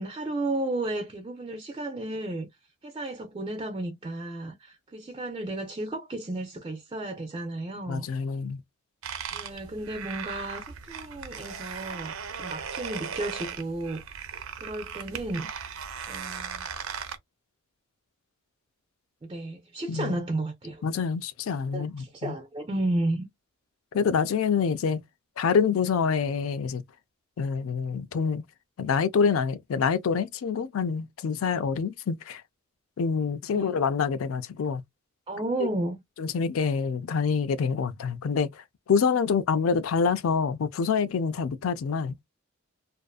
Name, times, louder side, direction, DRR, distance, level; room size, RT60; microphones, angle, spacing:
voice 1, 0.0-2.5 2.8-8.1 9.3-14.0 14.6-15.5 16.1-16.7 19.2-20.8 21.7-23.3 33.5-33.8 35.3-36.0, right 2 dB, 25° right, 0.4 m, -33 dB
voice 2, 7.9-8.6 19.9-20.1 20.8-22.4 23.9-25.0 25.4-26.8 27.4-28.4 28.8-32.4 33.0-34.8 35.6-35.7 36.2-42.1, left 6 dB, 80° left, 0.4 m, -26 dB
sound 1, 9.0-17.2, right 7 dB, 85° right, 0.6 m, -38 dB
2.5 x 2.4 x 2.2 m
head